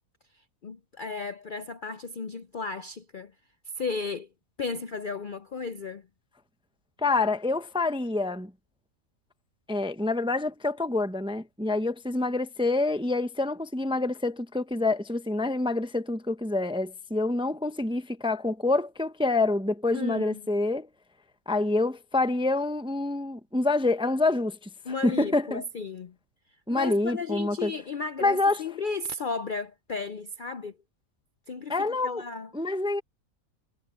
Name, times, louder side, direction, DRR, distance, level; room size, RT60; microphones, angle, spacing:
voice 1, 0.6-3.3 3.7-4.3 4.6-6.1 19.9-20.4 24.8-26.1 26.7-30.8 31.5-32.5, left 4 dB, 50° left, 0.6 m, -34 dB
voice 2, 7.0-8.5 9.7-20.9 21.5-24.6 25.0-25.6 26.7-27.7 28.2-28.6 31.7-32.2 32.5-33.0, left 2 dB, 5° right, 0.6 m, -27 dB
omnidirectional pair, 1.5 m